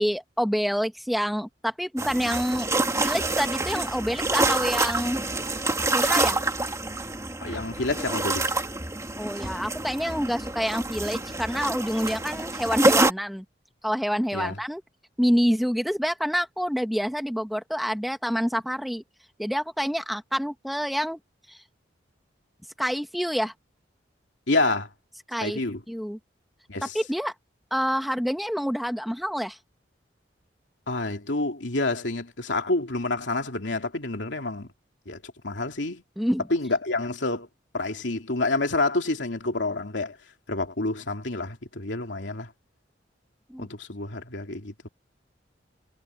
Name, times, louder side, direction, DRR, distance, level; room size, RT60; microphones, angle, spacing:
voice 1, 0.0-2.7 3.0-5.2 5.9-6.4 9.2-13.4 13.8-14.8 15.2-19.0 19.4-21.2 21.5-21.6 22.8-23.5 25.3-25.6 25.9-26.2 26.9-27.3 27.7-29.6 36.2-36.4 43.5-43.7, equal, ahead, 1.5 m, -27 dB
sound 1, 2.0-13.1, right 2 dB, 15° right, 2.2 m, -27 dB
voice 2, 7.4-8.6 14.3-14.5 24.5-24.9 25.4-25.8 26.7-27.0 30.9-34.7 35.1-36.0 36.5-37.5 37.7-40.2 40.5-42.5 43.6-44.9, left 2 dB, 75° left, 2.9 m, -28 dB
head